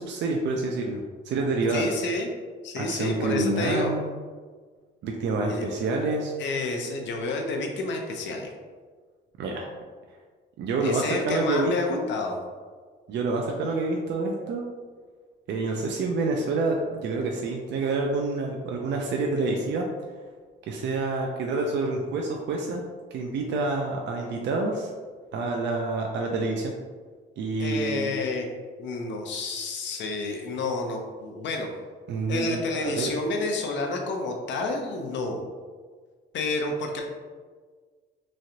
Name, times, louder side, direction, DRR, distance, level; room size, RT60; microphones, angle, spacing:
voice 1, 0.0-1.9 2.8-4.0 5.0-6.3 9.4-9.7 10.6-12.1 13.1-14.6 15.5-19.8 20.7-22.8 23.1-24.9 25.3-26.7 27.4-28.1 32.1-33.1, right 3 dB, 65° right, 0 dB, 0.4 m, -27 dB
voice 2, 1.7-2.3 2.6-3.9 5.4-5.7 6.4-8.5 10.8-12.4 27.6-28.5 28.8-31.7 32.3-35.4 36.3-37.0, left 3 dB, 70° left, 2 dB, 0.6 m, -29 dB
3.1 x 2.4 x 2.7 m, 1.5 s
cardioid pair, 90°, 20 cm